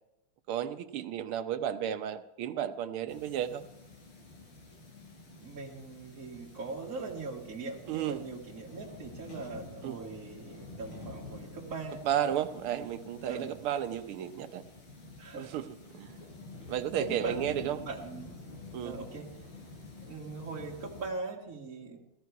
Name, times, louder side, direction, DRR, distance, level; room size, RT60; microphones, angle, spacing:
voice 1, 0.5-3.6 7.9-8.2 9.8-10.0 12.1-14.6 15.4-15.6 15.9-16.2 16.7-17.9 18.7-18.9, right 10 dB, 85° right, 9 dB, 1.8 m, -33 dB
sound 1, 3.1-21.1, left 3 dB, 70° left, 4.8 m, -49 dB
voice 2, 5.4-12.0 13.2-13.6 15.2-15.5 17.0-18.4 18.8-19.3 20.0-22.0, right 3 dB, 40° right, -3 dB, 2.3 m, -40 dB
16.5 x 14.0 x 4.7 m, 0.85 s
omnidirectional pair, 2.3 m